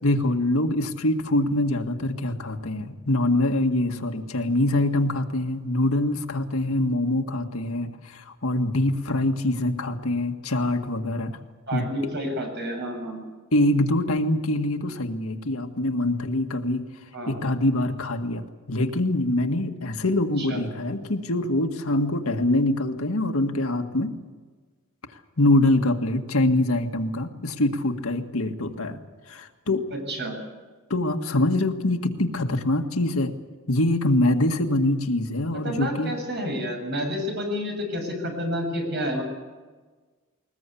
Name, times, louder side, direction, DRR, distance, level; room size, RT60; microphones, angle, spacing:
voice 1, 0.0-11.4 11.7-11.9 13.5-16.9 17.3-24.1 25.4-29.0 29.3-29.8 30.9-33.3 33.7-36.1, left 1 dB, 80° left, 5 dB, 1.8 m, -24 dB
voice 2, 11.7-13.2 17.1-17.4 20.4-20.6 30.1-30.4 35.5-39.2, equal, 55° right, 2 dB, 7.7 m, -29 dB
21.5 x 20.5 x 8.5 m, 1.4 s
head